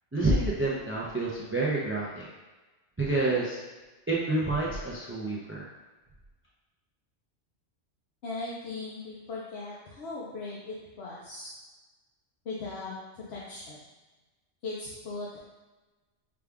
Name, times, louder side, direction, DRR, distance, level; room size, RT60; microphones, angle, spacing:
voice 1, 0.1-2.3 3.0-3.6 4.1-5.7, right 2 dB, 20° right, -5 dB, 0.4 m, -28 dB
voice 2, 8.2-11.5 12.4-13.8 14.6-15.4, left 3 dB, 65° left, -6 dB, 0.9 m, -38 dB
4.9 x 2.4 x 3.4 m, 1.2 s
omnidirectional pair, 1.2 m